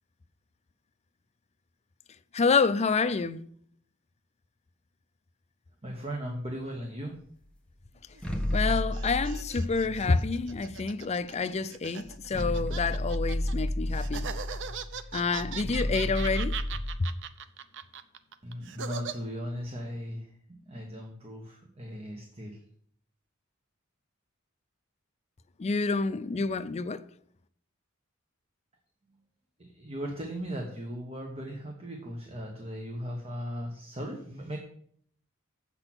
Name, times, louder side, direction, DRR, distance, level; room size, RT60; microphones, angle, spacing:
voice 1, 2.3-3.4 8.5-14.3 15.1-16.6 25.6-27.0, left 4 dB, 30° left, 0.4 m, -28 dB
voice 2, 5.8-7.2 18.4-20.4 20.6-22.6 29.6-34.6, equal, 30° right, 1.2 m, -37 dB
sound 1, 8.1-10.8 11.6-11.7 12.0-17.0, left 1 dB, 5° left, 1.1 m, -32 dB
sound 2, 8.1-13.5 13.9-19.1, right 7 dB, 60° right, 0.6 m, -40 dB
7.7 x 6.1 x 6.0 m
head